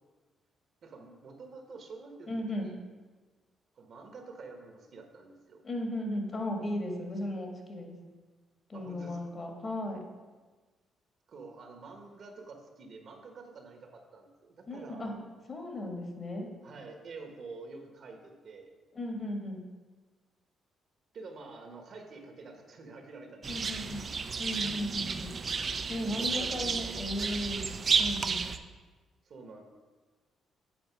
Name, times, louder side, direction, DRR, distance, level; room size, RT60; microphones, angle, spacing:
voice 1, 0.8-2.8 3.8-5.6 8.7-9.2 11.3-15.1 16.6-18.7 21.1-23.9 26.0-27.4 29.3-29.6, right 3 dB, 60° right, 4 dB, 1.2 m, -48 dB
voice 2, 2.3-2.7 5.6-8.0 8.7-10.1 14.7-15.2 15.5-16.5 18.9-19.6 23.5-24.1 24.4-25.4 25.9-27.7 28.0-28.5, left 1 dB, 40° left, 2 dB, 1.6 m, -36 dB
sound 1, 23.4-28.6, right 5 dB, 45° right, 0.5 m, -32 dB
7.9 x 4.4 x 5.7 m, 1.3 s
cardioid pair, 90°, 0 cm